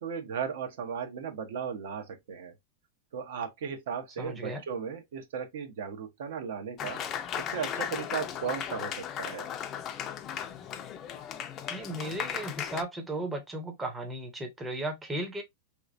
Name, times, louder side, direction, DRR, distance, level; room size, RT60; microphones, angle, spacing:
voice 1, 0.0-2.5 3.1-7.0 7.5-9.5, right 7 dB, 70° right, 0.9 m, -36 dB
voice 2, 4.2-4.6 11.7-15.4, right 1 dB, 10° right, 0.6 m, -35 dB
Applause, 6.8-12.8, left 9 dB, 25° left, 0.4 m, -36 dB
3.3 x 3.0 x 2.5 m
supercardioid pair, 155°, 0 cm